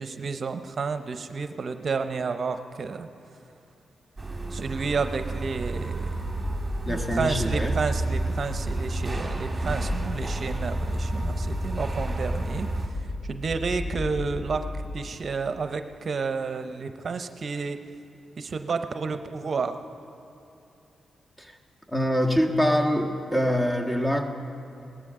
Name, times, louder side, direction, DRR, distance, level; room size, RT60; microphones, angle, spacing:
voice 1, 0.0-3.1 4.5-6.1 6.9-17.8 18.4-19.8, right 4 dB, 55° right, 9 dB, 0.6 m, -31 dB
sound 1, 4.2-12.9, right 2 dB, 25° right, 1.7 m, -31 dB
sound 2, 6.1-15.1, left 2 dB, 65° left, 1.3 m, -35 dB
voice 2, 6.8-7.7 21.4-21.5 21.9-24.3, equal, 20° left, 2 dB, 1.4 m, -24 dB
18.0 x 13.5 x 3.7 m, 2.9 s
cardioid pair, 55°, 0 cm